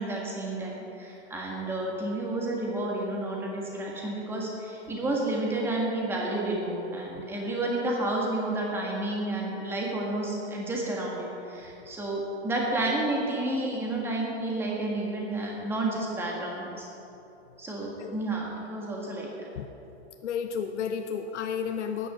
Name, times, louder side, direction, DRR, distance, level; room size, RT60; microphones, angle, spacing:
voice 1, 0.0-16.9 17.6-19.5, right 2 dB, 5° right, -2 dB, 1.5 m, -31 dB
voice 2, 20.2-22.1, left 7 dB, 90° left, 6 dB, 0.9 m, -32 dB
13.0 x 9.9 x 5.8 m, 2.9 s
supercardioid pair, 170°, 34 cm